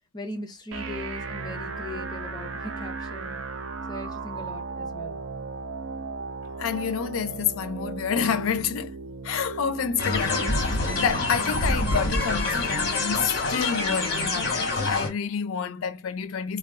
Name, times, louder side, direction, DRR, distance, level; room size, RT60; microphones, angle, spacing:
voice 1, 0.1-3.5 3.9-5.2, left 2 dB, 20° left, 0.5 m, -39 dB
sound 1, 0.7-14.7, right 4 dB, 70° right, 0.4 m, -37 dB
voice 2, 6.6-9.0 9.2-16.6, left 7 dB, 85° left, 0.4 m, -28 dB
sound 2, 10.0-15.1, left 2 dB, 50° left, 1.0 m, -26 dB
2.2 x 2.2 x 3.5 m
head